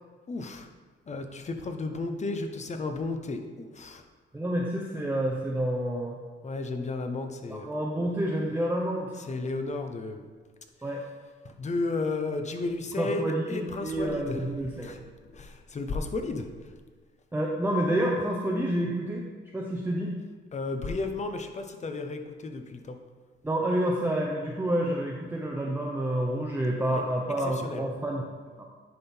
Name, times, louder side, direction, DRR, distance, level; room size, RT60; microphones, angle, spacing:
voice 1, 0.3-0.7 1.1-4.0 6.4-7.7 9.3-10.2 11.4-14.4 14.8-15.0 15.3-16.5 20.5-23.0 26.8-27.0 27.6-27.8, left 3 dB, 35° left, 6 dB, 0.8 m, -33 dB
voice 2, 4.3-6.2 7.5-9.2 10.8-11.0 13.0-15.0 17.3-19.2 19.5-20.2 23.4-28.2 28.6-28.7, right 1 dB, 10° right, -2 dB, 0.8 m, -29 dB
10.5 x 3.7 x 4.4 m, 1.5 s
cardioid pair, 90°, 20 cm